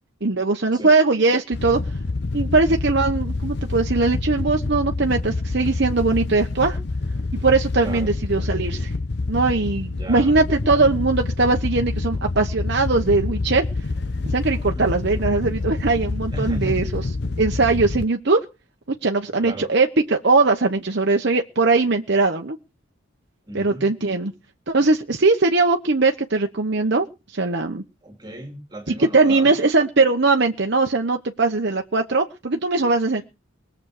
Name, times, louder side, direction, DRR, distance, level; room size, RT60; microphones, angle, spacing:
voice 1, 0.2-1.8 2.3-6.8 7.4-8.9 9.3-13.7 14.3-17.0 17.4-18.4 19.0-22.6 23.5-24.3 24.7-27.1 27.3-27.8 28.9-33.2, right 3 dB, 55° right, 3 dB, 1.0 m, -20 dB
Wind / Boat Water vehicle, 1.5-18.0, left 3 dB, 55° left, 0.8 m, -27 dB
voice 2, 7.8-8.1 10.0-10.4 14.7-14.9 16.3-16.8 19.4-19.7 23.5-23.9 28.0-29.5 33.1-33.2, right 1 dB, 20° right, 4 dB, 2.6 m, -35 dB
20.5 x 7.4 x 6.5 m, 0.31 s
head